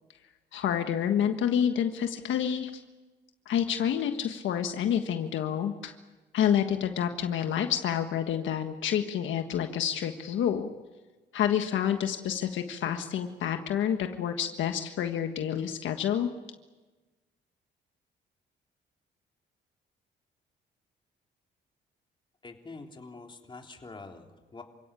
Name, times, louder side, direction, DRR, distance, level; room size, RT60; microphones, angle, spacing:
voice 1, 0.5-2.7 3.5-5.9 6.3-10.7 11.3-16.3, left 9 dB, 75° left, 6 dB, 1.5 m, -28 dB
voice 2, 22.4-24.6, left 3 dB, 25° left, 2 dB, 3.5 m, -45 dB
28.0 x 17.0 x 9.0 m, 1.2 s
cardioid pair, 90°, 20 cm